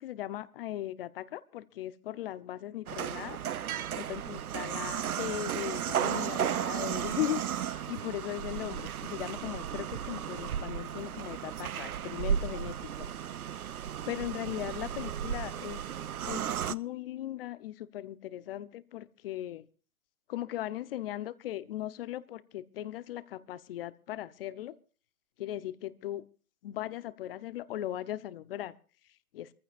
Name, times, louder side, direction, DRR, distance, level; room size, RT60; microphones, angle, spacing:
voice 1, 0.0-3.4 4.0-13.1 14.1-15.8 16.2-19.6 20.3-24.8 25.4-26.2 26.6-28.7 29.3-29.5, left 13 dB, 40° left, 16 dB, 1.0 m, -38 dB
sound 1, 2.9-16.7, right 9 dB, 80° right, 0.7 m, -34 dB
25.5 x 15.0 x 2.5 m, 0.37 s
figure-of-eight pair, 125°, 43 cm